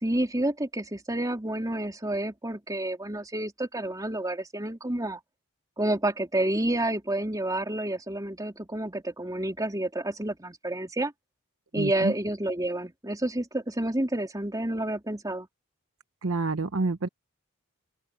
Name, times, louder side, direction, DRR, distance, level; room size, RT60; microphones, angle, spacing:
voice 1, 0.0-5.2 5.8-11.1 11.7-15.5, right 1 dB, 15° right, 3.4 m, -29 dB
voice 2, 11.7-12.1 16.2-17.1, right 3 dB, 70° right, 0.9 m, -28 dB
open air
head